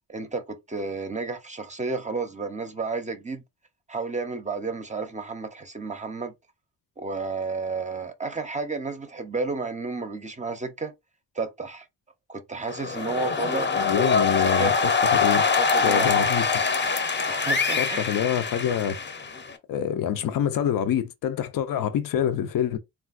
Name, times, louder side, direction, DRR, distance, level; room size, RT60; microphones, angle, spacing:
voice 1, 0.1-3.4 3.9-6.3 7.0-10.9 11.4-11.9 12.3-13.7 14.3-14.7 15.6-16.1 17.3-18.2, right 4 dB, 25° right, 0.5 m, -32 dB
sound 1, 12.7-19.6, left 5 dB, 35° left, 0.6 m, -24 dB
voice 2, 13.8-15.4 15.8-16.7 17.8-19.0 19.7-22.8, left 9 dB, 85° left, 0.5 m, -26 dB
3.3 x 2.3 x 2.4 m
wide cardioid pair, 105°, 32 cm